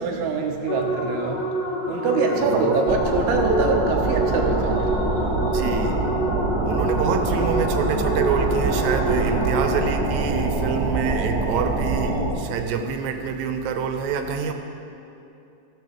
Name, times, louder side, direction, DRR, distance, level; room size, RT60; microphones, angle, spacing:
voice 1, 0.0-5.6, right 3 dB, 65° right, 1 dB, 2.3 m, -24 dB
sound 1, 0.7-10.1, equal, 70° left, 3.0 m, -28 dB
voice 2, 2.3-2.8 5.5-6.1 6.6-14.5, right 6 dB, 90° right, 6 dB, 2.5 m, -26 dB
sound 2, 2.8-12.3, right 3 dB, 30° right, 2.8 m, -25 dB
15.0 x 6.8 x 6.6 m, 2.7 s
omnidirectional pair, 4.0 m